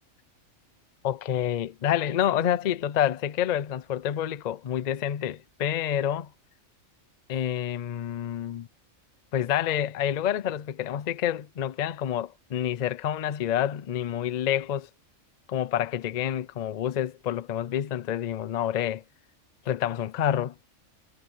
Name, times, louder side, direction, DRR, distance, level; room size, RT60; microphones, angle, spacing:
voice 1, 1.0-6.3 7.3-8.7 9.3-14.9 15.5-19.0 19.7-20.5, left 10 dB, 50° left, 0.5 m, -28 dB
omnidirectional pair, 1.4 m